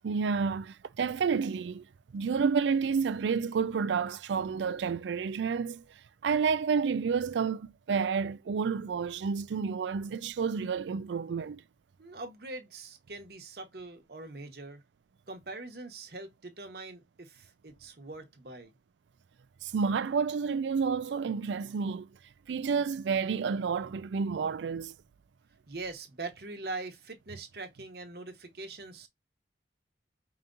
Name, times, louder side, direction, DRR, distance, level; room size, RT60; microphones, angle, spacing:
voice 1, 0.0-1.8 2.1-5.8 6.2-11.6 19.6-22.1 22.5-24.9, right 5 dB, 90° right, 0.4 m, -30 dB
voice 2, 12.0-14.8 15.3-18.7 25.7-29.1, right 3 dB, 60° right, 1.1 m, -42 dB
4.9 x 2.9 x 2.5 m
head